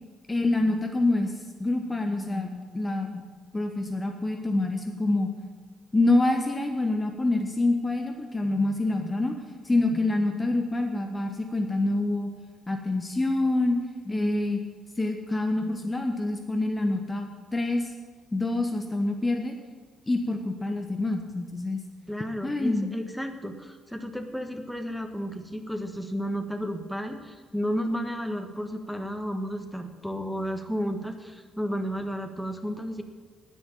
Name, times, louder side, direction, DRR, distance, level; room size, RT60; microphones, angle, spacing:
voice 1, 0.3-3.2 3.5-5.3 5.9-9.4 9.6-12.3 12.7-13.8 14.0-14.6 15.0-17.9 18.3-19.6 20.1-21.8 22.4-22.9, left 2 dB, 20° left, 5 dB, 1.2 m, -26 dB
voice 2, 22.1-33.0, equal, ahead, 6 dB, 1.4 m, -32 dB
10.0 x 9.8 x 8.6 m, 1.5 s
figure-of-eight pair, 40°, 0 cm